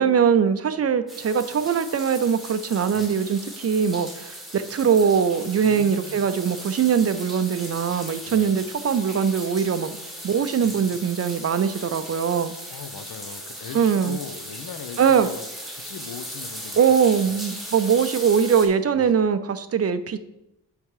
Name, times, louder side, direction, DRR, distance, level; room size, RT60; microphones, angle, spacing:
voice 1, 0.0-10.0 10.2-12.5 13.7-14.2 15.0-15.3 16.8-20.2, right 7 dB, 40° right, 11 dB, 0.4 m, -21 dB
sound 1, 1.1-18.7, equal, ahead, 1.2 m, -38 dB
voice 2, 5.6-6.3 8.3-8.6 10.6-11.0 12.7-16.8 17.2-17.4 18.9-19.2, left 7 dB, 70° left, 9 dB, 0.8 m, -40 dB
10.0 x 3.7 x 4.7 m, 0.88 s
wide cardioid pair, 175°, 38 cm